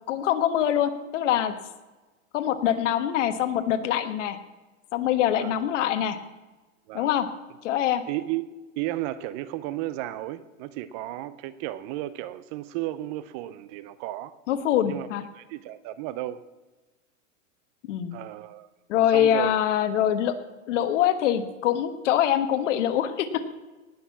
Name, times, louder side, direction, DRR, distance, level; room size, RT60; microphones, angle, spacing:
voice 1, 0.1-1.5 2.3-4.4 4.9-6.2 6.9-7.3 7.6-8.0 14.5-15.2 17.9-18.1 18.9-20.3 20.7-23.4, left 10 dB, 65° left, 1.5 m, -24 dB
voice 2, 8.1-14.4 14.9-15.1 15.3-16.4 18.1-18.7 19.1-19.5, right 15 dB, 30° right, 0.5 m, -33 dB
19.0 x 6.6 x 7.2 m
supercardioid pair, 145°, 39 cm